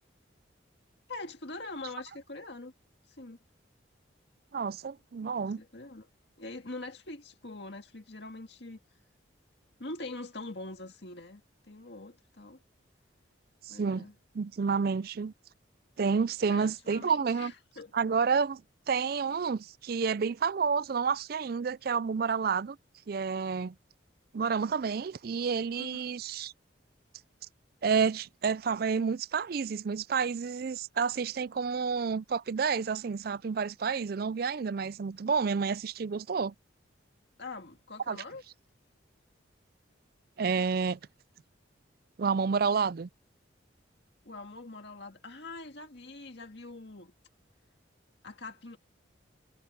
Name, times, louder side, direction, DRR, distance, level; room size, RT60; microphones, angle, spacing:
voice 1, 1.1-2.7 3.1-3.4 5.6-6.1 6.4-8.8 9.8-11.4 11.7-12.6 13.7-14.1 16.5-17.9 25.7-26.0 37.4-38.4 44.2-47.1 48.2-48.8, left 2 dB, 60° left, 2.0 m, -43 dB
voice 2, 4.5-5.6 13.7-14.1 14.3-15.3 16.0-17.5 17.9-18.6 18.9-22.8 23.1-23.7 24.3-26.5 27.8-36.5 38.1-38.2 40.4-41.0 42.2-43.1, right 5 dB, 50° right, 0.4 m, -29 dB
head